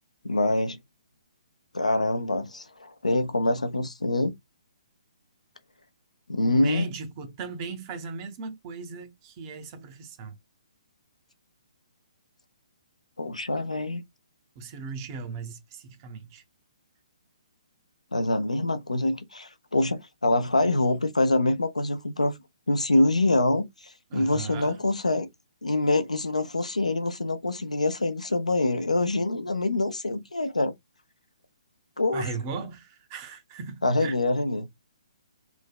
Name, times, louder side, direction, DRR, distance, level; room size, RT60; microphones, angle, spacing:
voice 1, 0.2-0.8 1.7-4.3 6.3-6.9 13.2-14.0 18.1-22.3 22.7-25.3 25.6-30.7 32.0-32.3 33.8-34.7, left 2 dB, 90° left, 0.6 m, -25 dB
voice 2, 6.4-10.4 14.6-16.4 24.1-24.8 32.1-34.2, right 5 dB, 30° right, 0.7 m, -37 dB
3.2 x 2.1 x 2.2 m
figure-of-eight pair, 135°, 4 cm